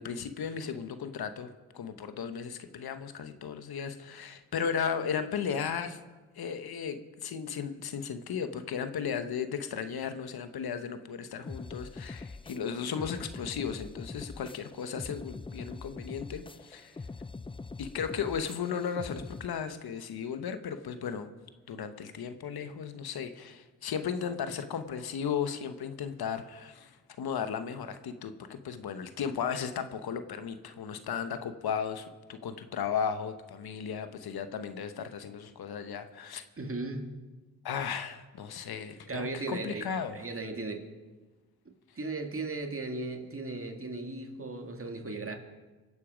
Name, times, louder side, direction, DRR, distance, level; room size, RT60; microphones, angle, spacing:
voice 1, 0.0-6.0 6.4-17.0 17.8-21.3 21.7-36.4 37.6-40.1, left 7 dB, 80° left, 9 dB, 1.1 m, -35 dB
sound 1, 11.5-19.5, left 3 dB, 15° left, 0.4 m, -43 dB
voice 2, 36.6-37.1 39.1-40.9 42.0-45.4, right 3 dB, 35° right, 4 dB, 2.1 m, -36 dB
24.5 x 8.3 x 5.1 m, 1.3 s
cardioid pair, 65°, 37 cm